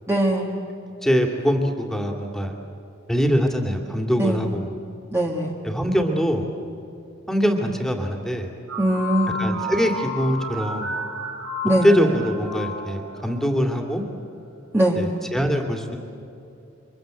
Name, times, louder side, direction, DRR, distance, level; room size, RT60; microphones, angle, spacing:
voice 1, 0.1-0.5 4.2-4.4 5.1-5.5 8.8-9.4 11.6-11.9 14.7-15.0, right 1 dB, 15° right, -2 dB, 1.8 m, -21 dB
voice 2, 1.0-2.6 3.1-4.8 5.6-6.4 7.3-8.5 9.3-10.9 11.8-14.0 14.9-16.0, equal, ahead, 3 dB, 2.5 m, -23 dB
sound 1, 8.7-13.7, left 1 dB, 85° right, 7.4 m, -31 dB
29.0 x 25.0 x 7.8 m, 2.7 s
head